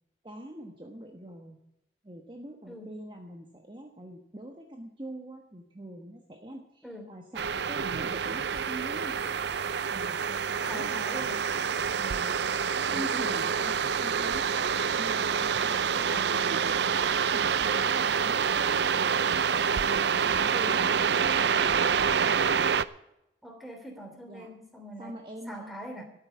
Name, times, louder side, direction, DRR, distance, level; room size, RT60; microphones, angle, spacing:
voice 1, 0.2-1.6 2.0-9.4 9.9-11.2 12.0-12.3 12.9-14.5 15.0-16.3 16.7-19.4 19.9-22.7 24.3-24.5 25.0-25.7, right 1 dB, 25° right, 2 dB, 1.2 m, -44 dB
voice 2, 6.8-7.1 10.6-11.5 15.9-16.4 20.5-20.8 23.4-25.2 25.5-26.0, equal, ahead, 2 dB, 3.0 m, -42 dB
sound 1, 7.3-22.8, right 6 dB, 65° right, 0.5 m, -27 dB
13.0 x 8.9 x 8.2 m, 0.84 s
head